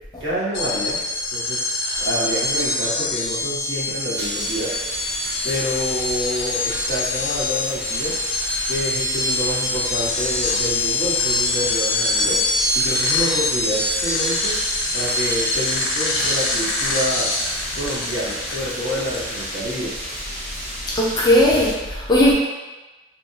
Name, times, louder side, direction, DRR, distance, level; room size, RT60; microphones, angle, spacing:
voice 1, 0.2-1.0 1.3-1.6 2.0-4.8 5.4-8.1 8.7-12.4 12.7-14.6 14.9-17.3 17.7-19.9, equal, 75° right, -8 dB, 1.0 m, -27 dB
sound 1, 0.5-19.7, left 2 dB, 75° left, 0.6 m, -24 dB
sound 2, 4.1-21.7, equal, 15° right, 1.2 m, -33 dB
voice 2, 20.9-22.3, left 1 dB, 20° left, -5 dB, 0.4 m, -17 dB
2.8 x 2.5 x 2.6 m, 1.1 s
head